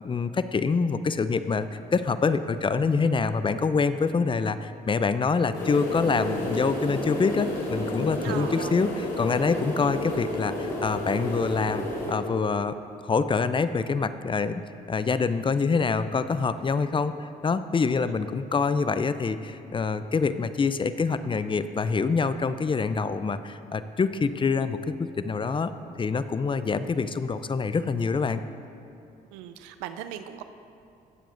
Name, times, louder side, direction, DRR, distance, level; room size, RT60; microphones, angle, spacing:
voice 1, 0.0-12.8 13.0-14.6 14.9-25.7 26.0-28.4, left 4 dB, 25° left, 12 dB, 0.5 m, -26 dB
sound 1, 5.5-12.1, left 1 dB, 90° left, 2.5 m, -31 dB
voice 2, 8.2-8.7 9.8-10.0 29.3-30.4, right 11 dB, 90° right, 10 dB, 0.5 m, -37 dB
18.0 x 7.4 x 2.6 m, 2.6 s
supercardioid pair, 60°, 18 cm